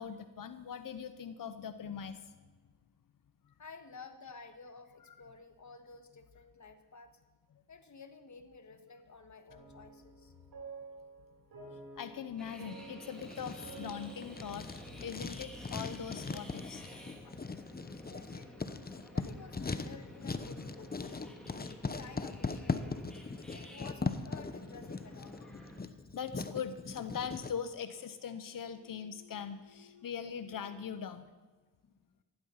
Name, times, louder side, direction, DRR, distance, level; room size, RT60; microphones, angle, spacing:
voice 1, 0.0-2.3 12.0-16.8 17.2-17.4 23.5-23.6 25.4-25.5 26.1-31.3, left 7 dB, 70° left, 11 dB, 0.9 m, -41 dB
voice 2, 3.6-7.2 7.7-10.3 18.0-18.8 19.1-21.4 21.8-23.0 23.5-25.5 31.8-32.0, left 4 dB, 55° left, 8 dB, 1.6 m, -53 dB
sound 1, 9.5-15.4, right 3 dB, 80° right, 4.0 m, -51 dB
sound 2, 12.4-25.8, equal, ahead, 3.3 m, -52 dB
Writing, 13.2-27.5, left 4 dB, 25° left, 0.9 m, -40 dB
15.0 x 11.5 x 5.7 m, 1.3 s
cardioid pair, 65°, 34 cm